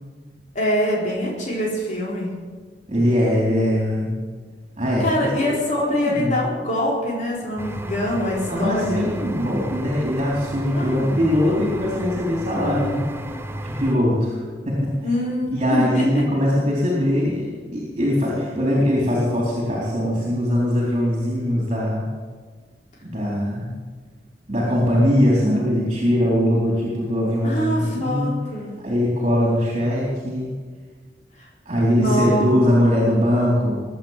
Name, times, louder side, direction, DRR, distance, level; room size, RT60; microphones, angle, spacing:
voice 1, 0.5-2.3 5.0-9.1 10.7-11.2 12.5-13.4 15.0-16.2 27.4-28.8 31.9-32.5, equal, 45° left, -4 dB, 4.3 m, -24 dB
voice 2, 2.9-4.2 4.8-5.5 6.0-6.4 8.5-13.1 13.6-14.4 14.7-14.9 15.5-22.0 23.0-23.7 24.5-28.4 28.8-30.5 31.7-33.8, equal, 35° right, -4 dB, 4.0 m, -21 dB
sound 1, 7.6-14.0, right 1 dB, 15° right, 0.9 m, -33 dB
22.0 x 8.7 x 7.5 m, 1.5 s
head